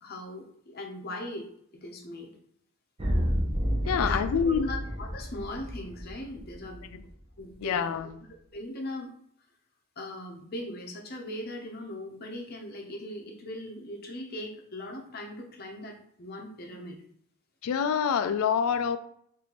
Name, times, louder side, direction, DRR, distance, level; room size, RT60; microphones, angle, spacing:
voice 1, 0.0-1.5 1.7-2.3 4.0-7.0 7.4-7.9 8.5-9.1 10.0-17.0, left 1 dB, 45° left, 2 dB, 0.7 m, -39 dB
sound 1, 3.0-7.0, equal, 25° right, 0.6 m, -30 dB
voice 2, 3.9-4.7 6.9-7.0 7.6-8.1 17.6-19.0, left 7 dB, 75° left, 11 dB, 0.3 m, -26 dB
4.2 x 2.6 x 3.0 m, 0.67 s
head